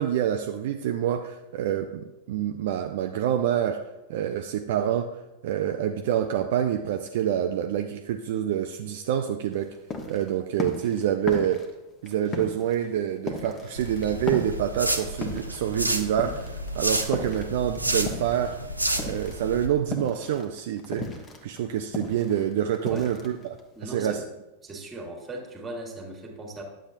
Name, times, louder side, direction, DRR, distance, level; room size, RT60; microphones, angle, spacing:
voice 1, 0.0-3.8 4.1-5.2 5.4-9.8 10.1-11.6 12.0-18.6 19.0-21.1 21.4-23.5 23.8-24.2, right 10 dB, 55° right, 5 dB, 0.4 m, -27 dB
sound 1, 9.5-18.6 18.9-23.8, left 3 dB, 25° left, 1.2 m, -36 dB
sound 2, 13.7-19.7, right 1 dB, 85° right, 0.7 m, -31 dB
voice 2, 23.7-24.3 24.6-26.6, right 2 dB, 15° right, 1 dB, 1.7 m, -38 dB
9.7 x 7.4 x 2.6 m, 1.0 s
figure-of-eight pair, 90°, 0 cm